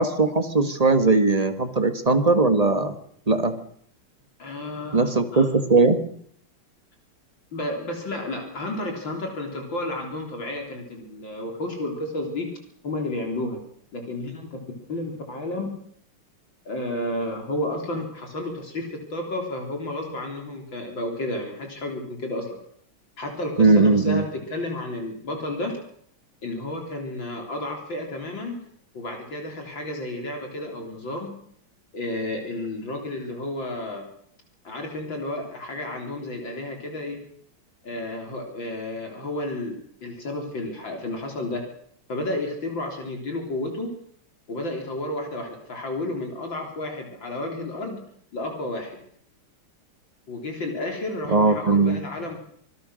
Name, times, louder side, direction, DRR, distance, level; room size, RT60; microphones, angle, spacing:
voice 1, 0.0-3.0 3.3-3.5 4.9-6.0 23.6-24.2 51.3-52.0, right 3 dB, 20° right, 8 dB, 1.5 m, -19 dB
voice 2, 4.4-5.5 7.5-12.5 12.8-13.6 13.9-15.7 16.7-22.6 23.2-25.7 26.4-28.6 28.9-31.3 31.9-34.0 34.6-37.2 37.8-41.6 42.1-43.9 44.5-48.0 48.3-49.0 50.3-52.4, left 1 dB, 60° left, 2 dB, 4.4 m, -31 dB
25.5 x 19.0 x 6.5 m, 0.65 s
omnidirectional pair, 2.3 m